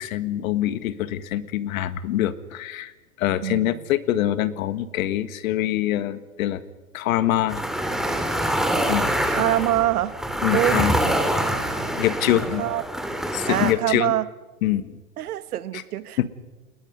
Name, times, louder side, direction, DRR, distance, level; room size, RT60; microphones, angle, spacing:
voice 1, 0.0-2.9 3.2-6.6 6.9-7.6 8.9-9.1 10.4-10.9 12.0-12.6 13.3-14.1 14.6-15.0 16.2-16.3, left 13 dB, 60° left, 13 dB, 1.7 m, -24 dB
voice 2, 3.4-3.9 9.3-10.1 10.5-10.9 12.6-12.8 13.5-14.3 15.2-16.3, right 14 dB, 75° right, 15 dB, 1.4 m, -25 dB
sound 1, 7.5-13.7, right 1 dB, ahead, 2.4 m, -25 dB
29.5 x 20.5 x 5.4 m, 1.2 s
hypercardioid pair, 125°, 45 cm